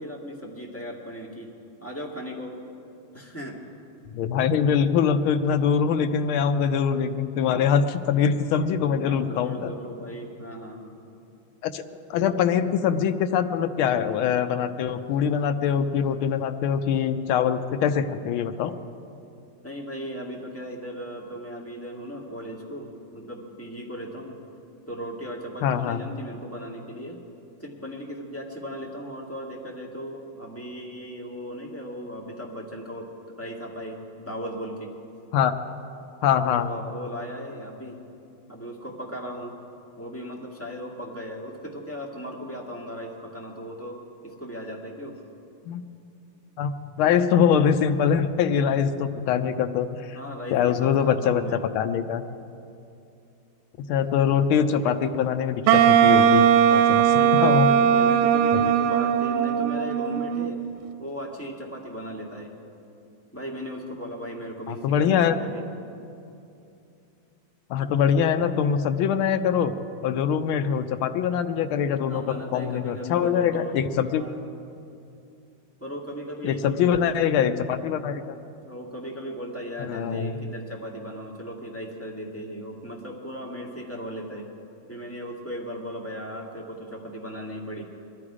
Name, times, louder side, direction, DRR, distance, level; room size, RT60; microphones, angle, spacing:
voice 1, 0.0-1.5 1.8-2.6 3.1-3.6 8.9-10.9 19.6-24.4 24.9-27.2 27.6-33.1 33.4-34.9 36.6-38.0 38.5-39.6 40.0-45.2 50.1-51.7 56.8-60.6 61.0-62.6 63.3-65.6 72.1-73.8 74.1-74.4 75.8-77.2 78.6-84.5 84.9-87.8, equal, 5° left, -3 dB, 1.7 m, -37 dB
voice 2, 4.1-9.7 11.6-11.8 12.1-18.7 25.6-26.0 35.3-35.5 36.2-36.7 45.7-45.8 46.6-50.2 50.5-52.2 53.9-57.0 57.4-57.7 64.7-65.4 67.7-69.7 70.0-72.2 72.5-74.2 76.4-78.2 79.8-80.4, left 7 dB, 85° left, 8 dB, 1.5 m, -23 dB
Wind instrument woodwind instrument, 55.7-60.7, right 9 dB, 90° right, 1.5 m, -19 dB
21.0 x 12.5 x 4.9 m, 2.7 s
omnidirectional pair, 2.3 m